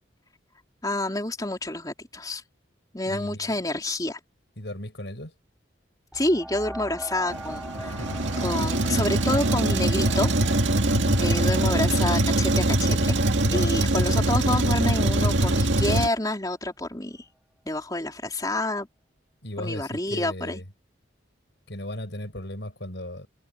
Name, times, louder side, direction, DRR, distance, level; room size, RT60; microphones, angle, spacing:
voice 1, 0.8-2.4 2.9-4.2 6.1-8.0 8.4-10.3 10.8-10.9 11.2-13.2 13.5-17.3 17.7-18.9 19.6-20.6, left 1 dB, 20° left, 3.8 m, -28 dB
voice 2, 3.1-3.6 4.6-5.3 7.8-8.2 10.9-11.3 13.4-13.8 19.4-20.7 21.7-23.3, left 1 dB, 65° left, 6.9 m, -36 dB
sound 1, 6.1-15.4 16.0-16.1, equal, 5° right, 2.8 m, -43 dB
Truck, 7.3-16.1, right 1 dB, 75° right, 2.1 m, -23 dB
head